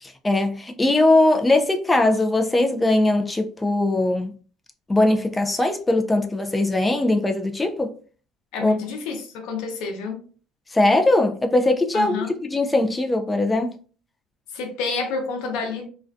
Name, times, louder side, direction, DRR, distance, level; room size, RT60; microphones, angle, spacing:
voice 1, 0.0-4.3 4.9-7.9 8.6-8.8 10.7-13.8, left 2 dB, 10° left, 0.3 m, -20 dB
voice 2, 8.5-10.2 11.9-12.3 14.5-15.9, left 4 dB, 85° left, 0.6 m, -29 dB
2.4 x 2.2 x 2.5 m
cardioid pair, 160°, 0 cm